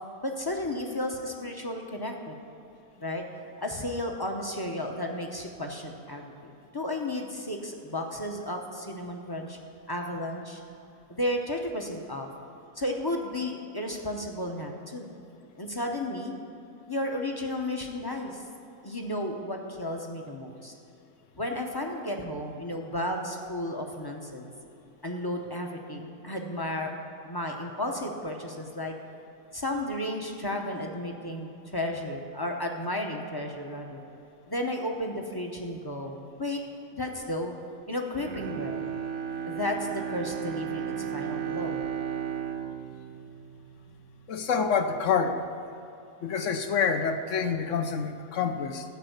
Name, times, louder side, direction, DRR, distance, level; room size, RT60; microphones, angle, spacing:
voice 1, 0.2-2.4 3.0-3.2 3.6-9.6 9.9-10.6 11.2-12.3 12.8-15.1 15.6-16.3 16.9-18.4 18.8-20.7 21.4-24.5 25.0-26.9 27.2-28.9 29.5-34.0 34.5-36.6 36.9-37.5 37.9-38.8 39.5-41.8, left 1 dB, 20° left, 2 dB, 0.6 m, -33 dB
Bowed string instrument, 38.1-44.4 44.8-44.9, right 9 dB, 75° right, 1.3 m, -34 dB
voice 2, 44.3-45.4 46.2-48.8, left 6 dB, 65° left, 7 dB, 0.9 m, -27 dB
12.5 x 5.3 x 8.0 m, 2.9 s
omnidirectional pair, 1.6 m